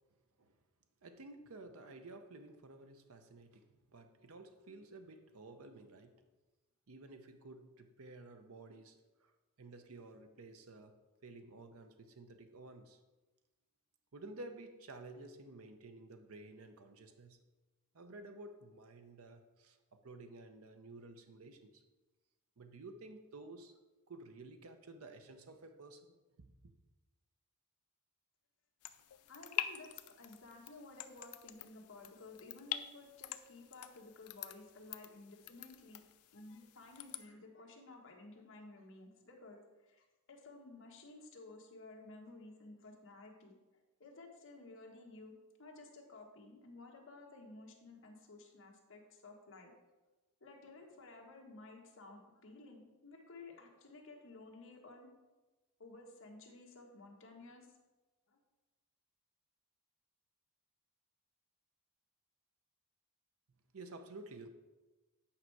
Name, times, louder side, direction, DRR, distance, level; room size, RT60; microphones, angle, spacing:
voice 1, 1.0-6.2 6.9-9.3 9.6-10.9 11.2-13.0 14.1-17.4 17.9-21.8 22.6-23.7 24.1-26.7 63.7-64.5, right 2 dB, 75° right, 7 dB, 0.7 m, -53 dB
sound 1, 28.8-37.3, left 12 dB, 85° left, 0.5 m, -46 dB
voice 2, 29.2-36.0 36.3-43.5 44.0-49.7 50.4-55.1 55.8-57.7 58.3-58.4, left 2 dB, 60° left, 0 dB, 1.4 m, -54 dB
8.7 x 5.5 x 4.7 m, 1.2 s
head